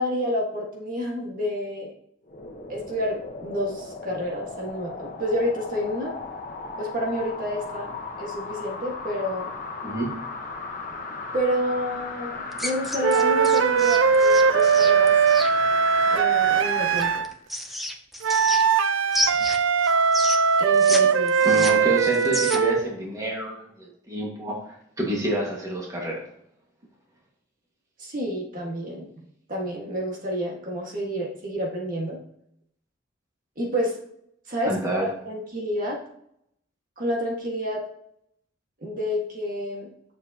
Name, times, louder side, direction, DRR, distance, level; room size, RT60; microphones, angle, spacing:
voice 1, 0.0-1.9 2.7-6.2 6.8-9.5 11.3-15.1 16.1-17.2 20.6-21.6 28.0-29.1 29.5-32.2 33.6-34.0 34.5-36.0 37.0-37.8 38.8-39.9, equal, 45° right, -2 dB, 1.7 m, -29 dB
sound 1, 2.3-17.2 17.7-17.8, left 3 dB, 45° left, 1.2 m, -36 dB
sound 2, 12.5-15.5 17.0-18.8 19.1-21.0 21.3-22.8, left 1 dB, ahead, 0.6 m, -30 dB
sound 3, 13.0-17.3 18.2-22.9, right 6 dB, 80° right, 0.5 m, -20 dB
voice 2, 21.4-26.2 34.6-35.1, right 1 dB, 15° right, -2 dB, 1.7 m, -28 dB
9.3 x 7.0 x 2.9 m, 0.71 s
head